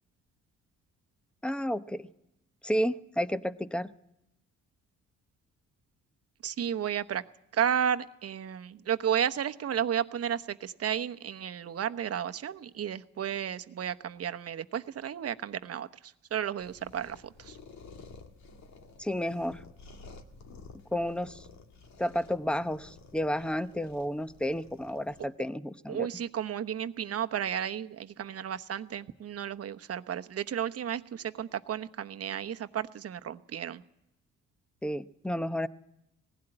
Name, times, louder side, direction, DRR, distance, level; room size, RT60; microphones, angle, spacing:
voice 1, 1.4-2.1 2.6-3.9 19.0-19.6 20.9-21.4 22.0-26.1 34.8-35.7, equal, 5° left, 12 dB, 0.8 m, -31 dB
voice 2, 6.4-7.2 7.5-17.6 25.9-33.8, right 9 dB, 50° right, 9 dB, 1.1 m, -33 dB
sound 1, 16.6-25.3, left 4 dB, 65° left, 2.1 m, -52 dB
19.5 x 16.0 x 9.0 m, 0.84 s
cardioid pair, 90°, 30 cm